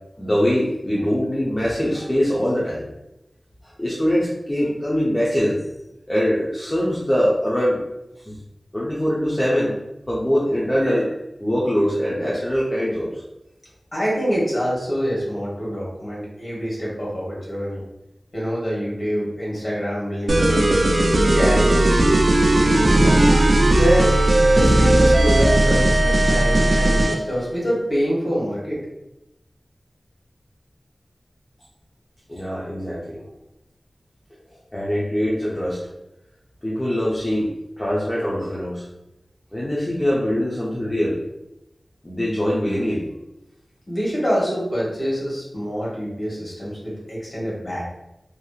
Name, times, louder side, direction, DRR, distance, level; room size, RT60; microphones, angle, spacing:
voice 1, 0.2-2.9 3.6-5.6 6.1-7.8 8.2-8.3 8.7-9.7 10.1-11.1 11.4-13.2 32.3-33.3 34.7-35.9 36.6-37.5 37.8-38.9 39.5-41.2 42.0-43.0, equal, 20° left, -7 dB, 0.6 m, -22 dB
voice 2, 13.9-17.9 18.3-20.7 21.1-22.0 22.5-23.4 23.7-28.8 43.9-47.8, equal, 45° left, -6 dB, 1.4 m, -25 dB
sound 1, 20.3-27.2, right 1 dB, 65° right, 0.4 m, -16 dB
3.0 x 2.7 x 2.4 m, 0.89 s
wide cardioid pair, 80°, 0 cm